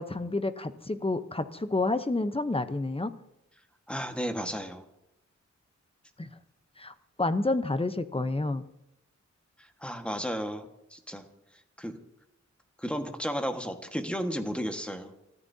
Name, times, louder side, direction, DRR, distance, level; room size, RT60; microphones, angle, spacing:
voice 1, 0.0-3.1 6.2-6.3 6.8-8.6, left 2 dB, 20° left, 10 dB, 0.8 m, -29 dB
voice 2, 3.9-4.8 9.6-11.2 11.8-12.0 12.8-15.1, equal, 5° left, 5 dB, 1.6 m, -33 dB
29.0 x 14.0 x 2.8 m, 0.86 s
wide cardioid pair, 80°, 29 cm